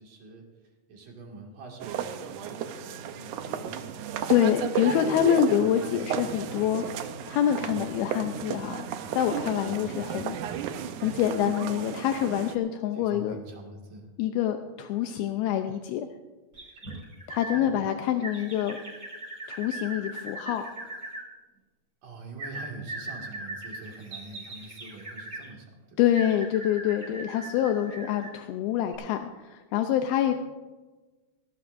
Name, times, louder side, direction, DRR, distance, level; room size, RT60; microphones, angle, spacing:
voice 1, 0.0-4.0 4.8-6.3 12.9-14.1 17.5-17.9 22.0-26.0 30.3-30.4, right 3 dB, 60° right, 0 dB, 3.6 m, -45 dB
sound 1, 1.8-12.6, right 8 dB, 80° right, 1.8 m, -34 dB
voice 2, 4.3-10.4 11.0-13.4 14.2-16.1 17.3-18.8 19.5-20.6 26.0-30.3, left 10 dB, 80° left, 6 dB, 2.6 m, -26 dB
sound 2, 16.5-17.6 18.2-21.2 22.4-25.5 26.1-28.4 28.9-29.0, right 2 dB, 20° right, 5.7 m, -40 dB
19.0 x 17.0 x 2.6 m, 1.3 s
omnidirectional pair, 4.5 m